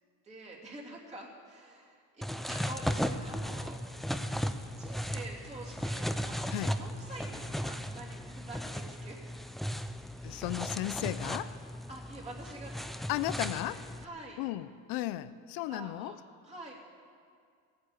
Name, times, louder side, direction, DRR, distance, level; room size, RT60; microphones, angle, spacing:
voice 1, 0.2-3.8 4.7-9.3 10.1-10.4 11.9-12.8 13.3-13.8 14.0-14.4 15.7-16.2 16.4-16.7, right 2 dB, 20° right, -3 dB, 3.0 m, -47 dB
sound 1, 2.2-14.0, equal, ahead, 0.4 m, -36 dB
voice 2, 10.2-11.5 13.1-13.8 14.4-16.1, left 15 dB, 90° left, 14 dB, 0.6 m, -35 dB
16.5 x 9.0 x 7.4 m, 2.2 s
cardioid pair, 120°, 34 cm